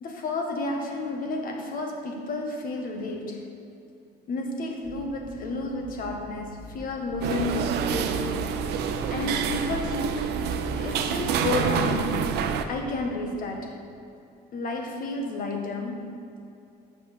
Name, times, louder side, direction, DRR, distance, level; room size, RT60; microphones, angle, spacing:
voice 1, 0.0-3.5 4.3-8.3 9.1-12.2 12.7-13.8 14.5-16.1, left 2 dB, 55° left, 2 dB, 1.4 m, -31 dB
sound 1, 4.8-10.4, equal, 25° right, 1.3 m, -45 dB
sound 2, 7.2-12.6, right 7 dB, 80° right, 0.6 m, -27 dB
6.4 x 5.7 x 7.2 m, 2.7 s
cardioid pair, 110°, 17 cm